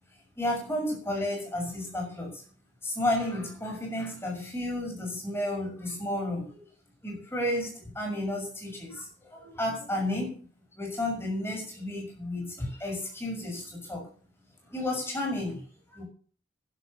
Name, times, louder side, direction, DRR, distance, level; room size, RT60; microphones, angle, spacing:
voice 1, 0.4-2.4 2.8-6.5 7.0-9.1 9.3-10.4 10.8-14.1 14.7-15.6 15.9-16.0, left 1 dB, 10° left, 0 dB, 6.4 m, -32 dB
12.5 x 10.5 x 6.9 m, 0.43 s
head